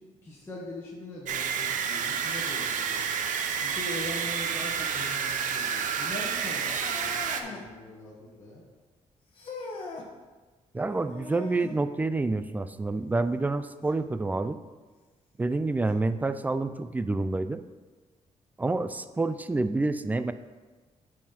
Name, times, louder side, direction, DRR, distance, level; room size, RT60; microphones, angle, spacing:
voice 1, 0.0-3.1 3.6-7.1 7.4-8.6, left 1 dB, 20° left, -7 dB, 1.6 m, -41 dB
sound 1, 1.3-7.4, right 7 dB, 80° right, 0.6 m, -30 dB
sound 2, 6.7-7.7 9.3-10.1 11.1-11.8 13.9-14.0 14.8-14.9 15.9-16.0, left 3 dB, 45° left, 1.2 m, -40 dB
voice 2, 10.7-14.6 15.4-17.6 18.6-20.3, right 3 dB, 10° right, 12 dB, 0.3 m, -28 dB
10.0 x 4.2 x 4.3 m, 1.3 s
cardioid pair, 135°, 13 cm